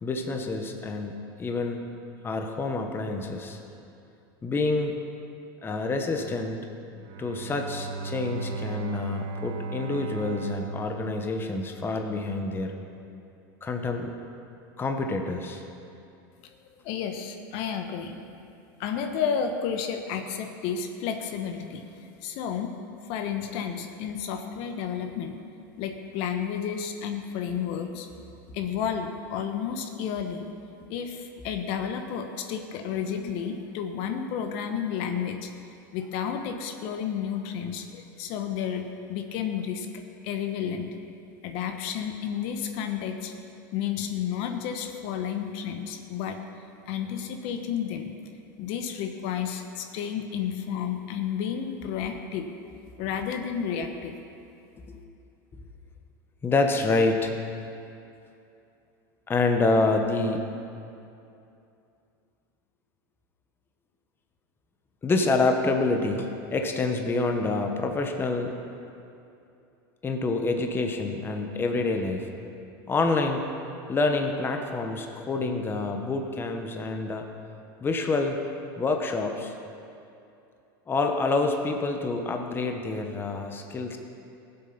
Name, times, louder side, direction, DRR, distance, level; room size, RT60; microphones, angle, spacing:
voice 1, 0.0-1.9 2.2-3.6 4.4-4.9 5.6-6.6 7.2-12.7 13.6-14.1 14.8-15.6 54.9-55.0 56.4-57.3 59.3-60.5 65.0-68.5 70.0-72.3 72.9-73.4 73.9-77.2 77.8-78.4 78.8-79.5 80.9-84.0, left 3 dB, 20° left, 4 dB, 1.1 m, -27 dB
Bowed string instrument, 6.9-12.0, right 3 dB, 60° right, 1.2 m, -36 dB
voice 2, 16.8-18.2 18.8-21.8 22.2-22.7 23.1-25.3 25.8-28.1 28.5-30.4 30.9-35.5 35.9-39.9 40.2-40.9 41.4-43.3 43.7-46.4 46.9-48.2 48.6-52.5 53.0-54.1, left 8 dB, 60° left, 6 dB, 1.1 m, -31 dB
16.0 x 7.9 x 5.8 m, 2.7 s
supercardioid pair, 120°, 11 cm